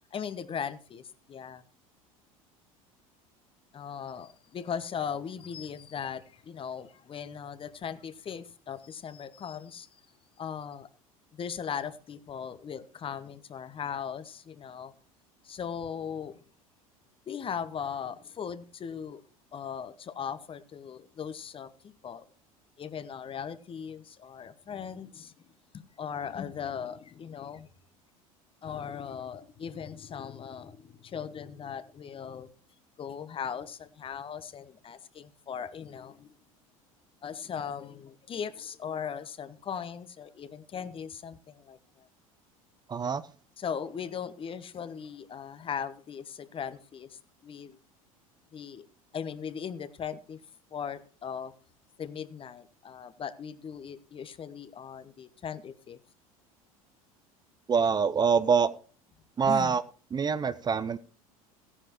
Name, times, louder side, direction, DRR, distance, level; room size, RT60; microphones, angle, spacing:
voice 1, 0.1-1.6 3.7-9.9 10.4-10.9 11.3-14.9 15.4-16.4 17.3-19.2 19.5-22.3 22.8-25.3 26.0-27.7 28.6-32.5 33.0-36.3 37.2-42.1 43.6-47.8 48.5-48.9 49.1-50.4 50.7-51.5 52.0-56.0 59.4-59.7, left 7 dB, 30° left, 14 dB, 1.0 m, -38 dB
voice 2, 42.9-43.2 57.7-58.7 59.4-59.8 60.1-61.0, right 6 dB, 25° right, 14 dB, 0.6 m, -25 dB
16.0 x 10.0 x 3.0 m, 0.37 s
figure-of-eight pair, 70°, 18 cm